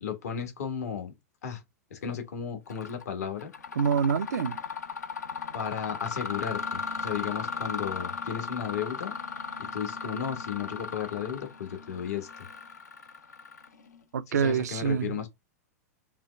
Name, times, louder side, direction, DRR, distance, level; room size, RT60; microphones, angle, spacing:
voice 1, 0.0-1.1 1.4-1.6 1.9-3.5 5.5-9.1 9.6-12.3 14.3-15.3, left 8 dB, 75° left, 1.2 m, -34 dB
Mechanisms, 2.7-3.0 3.4-14.0, left 5 dB, 90° left, 0.8 m, -37 dB
voice 2, 3.8-4.6 14.1-15.2, right 7 dB, 80° right, 0.4 m, -26 dB
5.7 x 2.3 x 3.3 m
hypercardioid pair, 110°, 9 cm